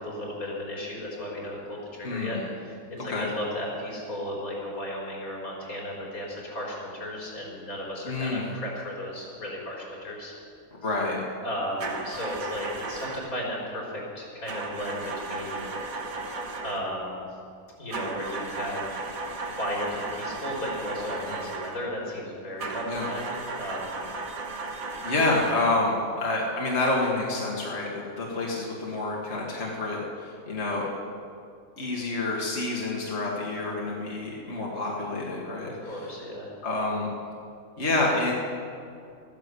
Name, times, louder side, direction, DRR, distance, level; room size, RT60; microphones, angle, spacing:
voice 1, 0.0-10.3 11.4-15.7 16.6-17.3 17.8-19.0 19.5-24.0 35.7-36.5, left 1 dB, 85° left, -4 dB, 4.6 m, -35 dB
voice 2, 2.0-2.4 3.1-3.3 8.0-8.5 10.8-11.2 21.3-21.4 22.9-23.1 25.0-27.9 28.2-30.9 31.8-36.1 36.6-37.1 37.8-38.3, left 2 dB, 50° left, -3 dB, 2.1 m, -28 dB
sound 1, 11.8-13.4 14.5-16.9 17.9-21.9 22.6-25.8, right 3 dB, 80° right, 1.7 m, -35 dB
14.0 x 10.5 x 8.2 m, 2.5 s
omnidirectional pair, 1.5 m